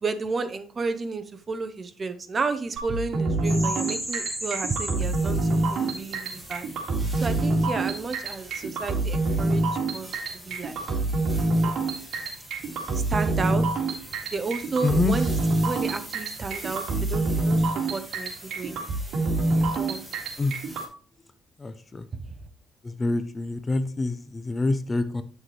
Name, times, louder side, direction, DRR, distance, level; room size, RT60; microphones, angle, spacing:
voice 1, 0.0-6.7 7.2-9.7 9.9-10.2 10.4-10.8 12.9-13.6 14.2-15.4 15.6-18.8 19.6-20.0, right 4 dB, 30° right, 9 dB, 0.7 m, -32 dB
sound 1, 2.8-20.9, right 2 dB, 65° right, 2.1 m, -26 dB
sound 2, 3.4-20.9, right 1 dB, 5° right, 1.7 m, -41 dB
voice 2, 14.8-15.2 20.4-20.5 21.6-22.1 22.8-25.2, left 3 dB, 20° left, 12 dB, 0.5 m, -26 dB
9.1 x 6.4 x 3.2 m, 0.42 s
cardioid pair, 140°, 0 cm